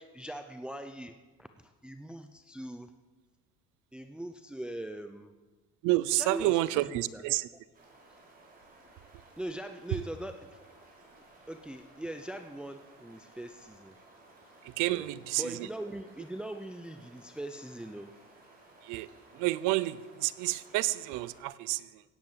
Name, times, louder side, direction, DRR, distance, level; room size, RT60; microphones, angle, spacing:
voice 1, 0.0-2.9 3.9-5.3 6.1-6.6 6.9-7.2 9.4-10.6 11.5-13.9 14.8-15.1 15.4-18.2, right 1 dB, 5° right, 8 dB, 0.6 m, -41 dB
voice 2, 5.8-7.5 14.6-15.7 18.8-22.0, right 17 dB, 85° right, 18 dB, 0.7 m, -30 dB
sound 1, 7.7-21.4, right 2 dB, 30° right, 5.5 m, -57 dB
17.0 x 9.2 x 7.4 m, 1.2 s
cardioid pair, 120°, 30 cm